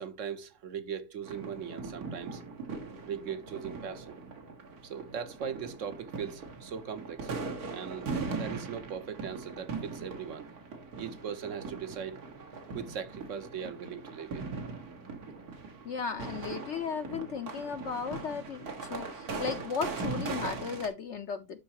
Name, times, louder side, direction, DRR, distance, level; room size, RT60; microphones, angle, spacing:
voice 1, 0.0-2.4 3.0-4.2 4.8-7.3 7.7-10.5 11.0-12.2 12.7-14.5, right 7 dB, 60° right, 1.2 m, -39 dB
sound 1, 1.2-20.9, right 4 dB, 80° right, 2.2 m, -40 dB
voice 2, 15.8-21.6, left 6 dB, 60° left, 0.9 m, -35 dB
12.0 x 4.2 x 2.9 m
omnidirectional pair, 1.6 m